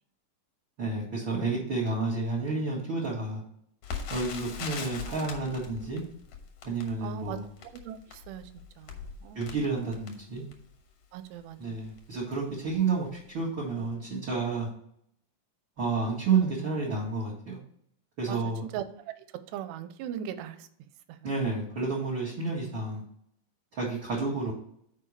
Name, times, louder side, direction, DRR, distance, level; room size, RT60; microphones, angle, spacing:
voice 1, 0.8-3.4 4.1-6.0 6.6-7.5 9.3-10.4 11.6-14.7 15.8-17.6 18.2-18.6 21.2-23.0 23.7-24.5, right 4 dB, 65° right, -5 dB, 1.2 m, -30 dB
Crackle, 3.8-10.8 11.4-11.5 11.8-12.0 12.7-12.9 13.1-13.2, left 6 dB, 75° left, 1.7 m, -41 dB
voice 2, 7.0-7.4 7.8-8.5 8.8-9.5 11.1-11.8 18.3-18.4 18.7-18.8 19.5-20.7 21.1-21.2, right 10 dB, 90° right, 10 dB, 2.8 m, -39 dB
6.7 x 4.6 x 6.4 m, 0.69 s
omnidirectional pair, 4.8 m